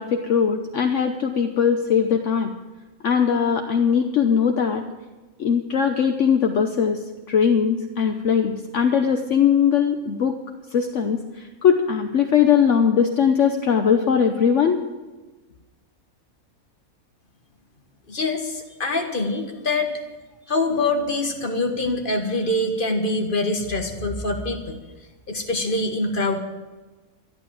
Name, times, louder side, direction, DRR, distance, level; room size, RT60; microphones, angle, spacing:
voice 1, 0.0-2.5 3.0-4.9 5.4-7.0 7.3-10.4 10.7-14.8, left 7 dB, 60° left, 4 dB, 1.2 m, -20 dB
voice 2, 18.1-20.0 20.5-24.8 25.3-26.4, left 2 dB, 40° left, 3 dB, 1.8 m, -24 dB
13.0 x 11.5 x 7.6 m, 1.2 s
omnidirectional pair, 1.5 m